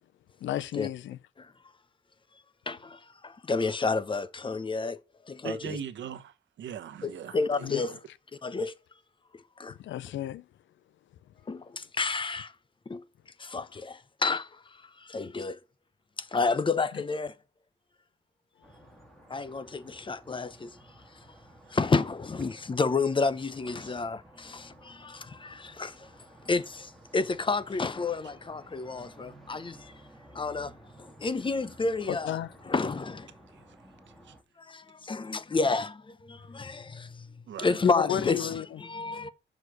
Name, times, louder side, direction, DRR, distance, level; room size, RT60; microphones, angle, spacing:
voice 1, 0.4-1.2 7.6-7.8 9.8-10.5 32.1-32.5 37.8-38.8, left 11 dB, 90° left, 0.5 m, -32 dB
voice 2, 2.7-5.0 5.2-5.8 7.0-8.0 8.4-8.7 9.6-9.8 11.5-12.5 12.9-13.0 13.4-15.6 16.2-17.4 19.3-20.8 21.1-21.2 21.7-26.1 26.5-29.9 30.3-32.3 32.7-33.3 34.6-39.3, left 4 dB, 25° left, 0.7 m, -30 dB
voice 3, 5.4-8.0 23.8-24.0 34.3-34.4 37.5-37.7, right 8 dB, 80° right, 1.0 m, -40 dB
sound 1, 18.6-34.4, right 1 dB, ahead, 2.1 m, -54 dB
6.2 x 5.0 x 4.9 m
cardioid pair, 105°, 19 cm